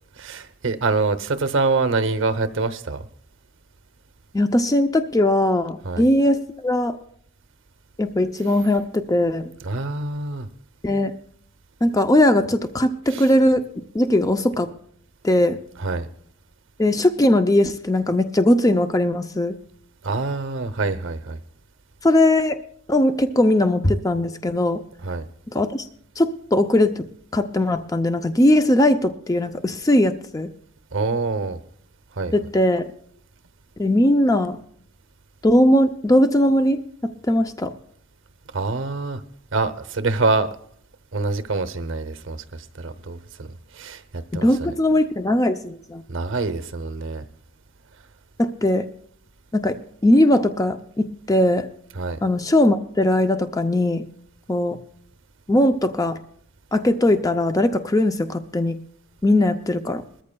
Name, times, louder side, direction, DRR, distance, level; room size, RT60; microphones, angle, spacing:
voice 1, 0.1-3.1 5.8-6.1 9.6-10.5 13.1-13.2 15.8-16.1 20.0-21.4 25.0-25.3 30.9-31.6 32.1-32.3 38.5-39.2 39.5-40.5 41.1-43.5 43.7-44.7 46.1-47.3 52.0-52.2, right 3 dB, 65° right, 11 dB, 0.8 m, -25 dB
voice 2, 4.3-7.0 8.0-9.5 10.8-11.1 11.8-13.7 13.9-14.7 15.2-15.6 16.8-19.6 22.0-22.6 22.9-24.8 25.5-25.8 26.2-27.0 27.3-30.5 32.3-32.9 33.8-34.6 35.4-37.7 44.4-46.0 48.4-48.9 49.5-51.7 52.2-54.1 54.5-54.8 55.5-56.2 56.7-58.8 59.2-60.0, left 1 dB, 15° left, 8 dB, 0.5 m, -19 dB
21.5 x 14.0 x 2.3 m, 0.67 s
head